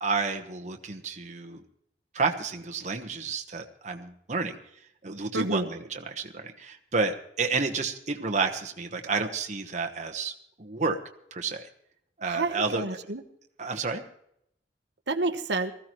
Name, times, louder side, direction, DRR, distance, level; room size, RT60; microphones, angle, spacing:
voice 1, 0.0-1.6 2.1-4.6 5.0-10.3 10.6-11.0 11.3-11.7 12.2-12.8 13.6-14.0, right 4 dB, 40° right, 4 dB, 1.1 m, -30 dB
voice 2, 5.3-5.7 12.2-13.2 15.1-15.7, right 2 dB, 85° right, 7 dB, 1.1 m, -29 dB
19.5 x 14.5 x 3.0 m, 0.73 s
head